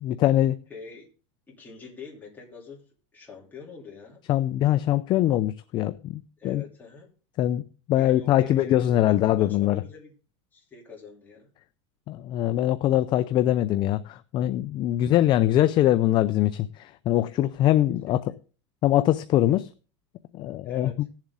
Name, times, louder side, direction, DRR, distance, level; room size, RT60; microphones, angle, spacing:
voice 1, 0.0-0.6 4.3-6.6 7.4-7.6 7.9-9.8 12.1-18.2 18.8-19.7 20.3-20.9, left 13 dB, 30° left, 0.4 m, -23 dB
voice 2, 0.7-1.1 1.5-2.8 3.1-4.2 6.4-7.1 7.9-10.1 10.5-11.5 15.2-15.5 18.1-18.3 20.6-21.1, left 5 dB, 10° left, 3.1 m, -44 dB
17.5 x 7.3 x 3.7 m
supercardioid pair, 155°, 15 cm